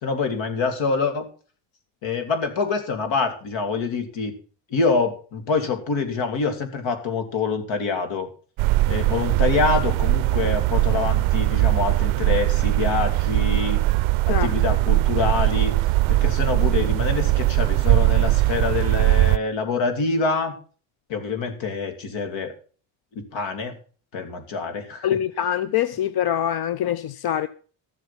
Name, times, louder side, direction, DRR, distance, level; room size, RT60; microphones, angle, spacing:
voice 1, 0.0-1.3 2.0-4.3 4.7-8.3 8.9-13.8 14.3-15.7 16.1-20.6 21.1-22.5 23.1-23.7 24.1-25.1, left 4 dB, 70° left, 2.8 m, -25 dB
sound 1, 8.6-19.4, right 18 dB, 80° right, 0.5 m, -20 dB
voice 2, 25.0-27.5, left 10 dB, 55° left, 0.7 m, -24 dB
13.5 x 7.7 x 5.8 m
cardioid pair, 105°, 47 cm